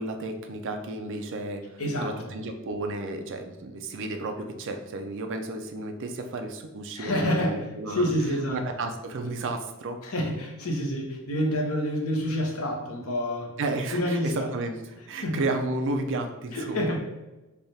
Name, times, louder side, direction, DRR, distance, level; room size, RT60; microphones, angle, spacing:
voice 1, 0.0-8.1 8.5-10.0 13.6-14.8 15.1-16.8, right 2 dB, 60° right, 5 dB, 0.5 m, -32 dB
voice 2, 1.8-2.3 6.9-7.6 7.9-8.6 10.0-13.5 13.9-14.5 15.2-15.4 16.5-17.0, equal, 70° left, 1 dB, 0.9 m, -28 dB
3.4 x 2.4 x 4.1 m, 1.1 s
head